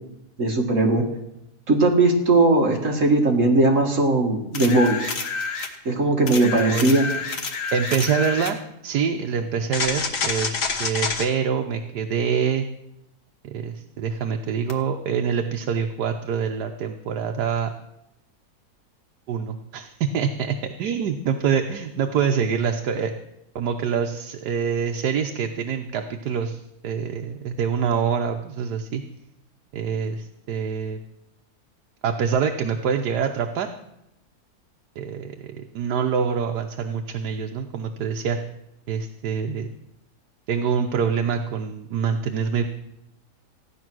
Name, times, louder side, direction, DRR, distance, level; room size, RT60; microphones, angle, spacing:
voice 1, 0.4-1.1 1.7-5.2 5.9-7.1, right 2 dB, 50° right, 2 dB, 2.0 m, -19 dB
sound 1, 4.5-5.7 6.3-8.6 9.7-11.3 14.7-14.8, left 4 dB, 90° left, 2.0 m, -28 dB
voice 2, 6.6-7.1 7.7-12.6 13.4-17.7 19.3-23.1 23.5-29.0 29.7-31.0 32.0-33.7 35.0-38.4 38.9-39.7 40.5-42.7, right 7 dB, 85° right, 4 dB, 1.4 m, -25 dB
15.5 x 10.0 x 6.1 m, 0.87 s
omnidirectional pair, 1.7 m